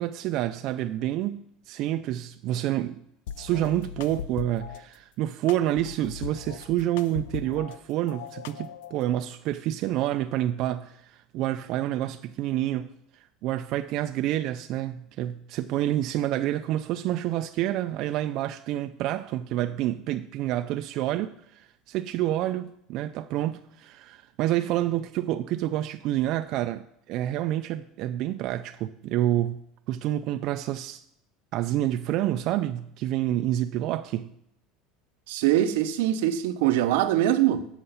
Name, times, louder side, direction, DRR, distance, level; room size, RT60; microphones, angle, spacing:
voice 1, 0.0-3.0 3.4-12.9 13.1-29.6 29.9-31.0 31.5-34.3, right 13 dB, 50° right, 0.3 m, -28 dB
sound 1, 3.3-4.8 5.5-7.8 8.1-9.1, left 9 dB, 90° left, 0.5 m, -39 dB
voice 2, 35.3-37.7, right 12 dB, 80° right, 0.7 m, -23 dB
7.9 x 6.4 x 5.6 m
supercardioid pair, 145°, 0 cm